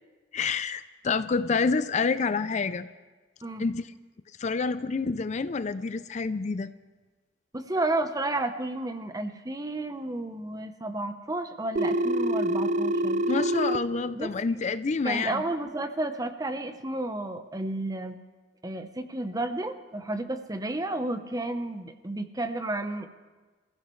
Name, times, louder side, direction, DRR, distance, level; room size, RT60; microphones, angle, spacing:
voice 1, 0.3-2.9 3.6-3.8 4.4-6.7 13.3-15.4, left 4 dB, 40° left, 13 dB, 0.4 m, -28 dB
voice 2, 7.5-13.4 14.1-14.4 15.0-18.2 18.6-23.1, right 2 dB, 20° right, 8 dB, 0.9 m, -32 dB
Telephone, 11.8-13.8, right 1 dB, 40° right, 0.5 m, -26 dB
27.0 x 15.0 x 3.2 m, 1.3 s
head